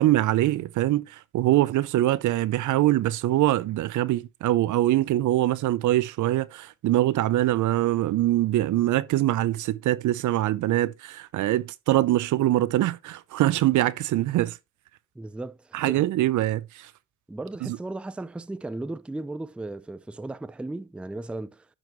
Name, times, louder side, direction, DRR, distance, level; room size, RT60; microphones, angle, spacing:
voice 1, 0.0-14.6 15.7-16.9 17.6-17.8, right 15 dB, 80° right, 0.7 m, -23 dB
voice 2, 15.2-16.0 17.3-21.7, right 2 dB, 5° right, 0.4 m, -36 dB
10.5 x 6.0 x 3.1 m
cardioid pair, 90°, 30 cm